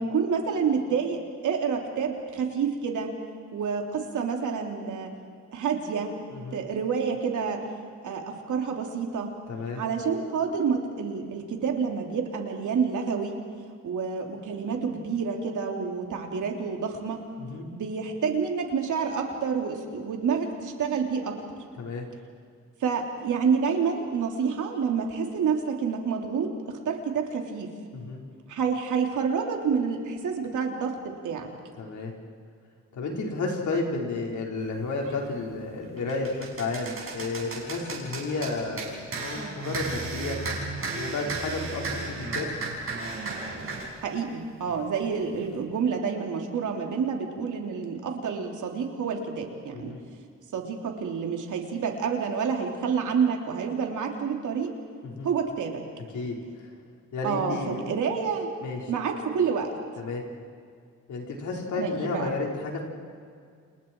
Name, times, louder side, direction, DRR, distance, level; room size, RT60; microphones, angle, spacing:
voice 1, 0.0-3.1 3.5-5.1 5.5-6.1 6.5-7.6 8.0-9.3 9.8-13.3 13.8-17.2 17.7-21.3 22.8-27.7 28.5-31.5 44.0-49.9 50.5-54.7 55.2-55.8 57.2-58.5 58.9-59.7 61.7-62.3, right 6 dB, 90° right, 2 dB, 3.4 m, -28 dB
voice 2, 6.3-6.6 9.5-9.8 17.4-17.7 21.8-22.0 27.9-28.2 31.8-32.1 32.9-40.4 40.9-42.5 44.7-44.8 49.7-50.0 55.0-55.3 56.1-56.8 57.1-57.8 58.6-58.9 60.0-60.2 61.1-62.8, left 3 dB, 80° left, -1 dB, 5.2 m, -32 dB
sound 1, 35.0-35.2 35.7-43.9, right 3 dB, 45° right, 6.4 m, -34 dB
29.5 x 29.5 x 4.8 m, 2.2 s
wide cardioid pair, 155°, 29 cm